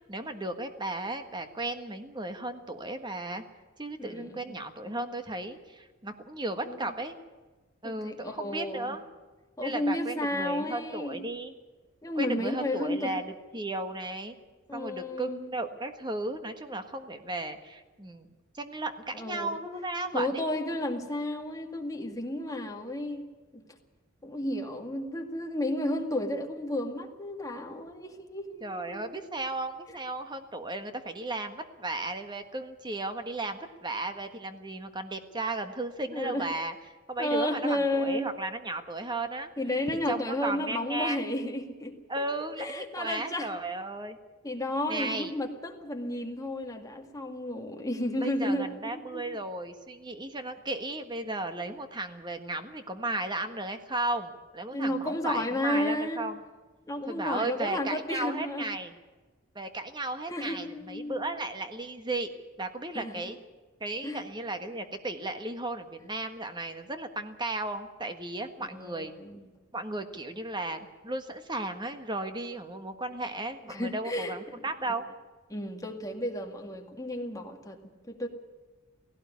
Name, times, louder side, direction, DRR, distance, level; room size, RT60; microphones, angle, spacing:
voice 1, 0.1-3.4 3.8-7.2 7.8-9.0 9.6-11.5 12.1-14.3 14.7-20.4 28.6-36.7 37.1-39.5 40.1-41.2 42.1-44.2 44.9-45.3 48.2-56.4 57.1-58.9 59.5-62.3 62.6-63.4 63.8-69.1 69.7-75.0, right 2 dB, 20° right, 8 dB, 1.5 m, -35 dB
voice 2, 4.0-4.6 6.7-6.9 7.8-9.0 9.6-11.3 12.0-13.2 14.7-15.5 19.1-19.6 20.1-23.3 23.5-23.6 24.2-29.2 36.1-36.5 37.2-38.3 39.6-42.2 42.6-43.5 44.4-49.2 54.7-56.2 56.9-58.7 60.3-61.3 62.9-63.3 64.0-64.2 68.6-69.5 73.6-75.0 75.5-78.3, left 1 dB, 15° left, 3 dB, 2.0 m, -32 dB
17.0 x 17.0 x 9.6 m, 1.2 s
head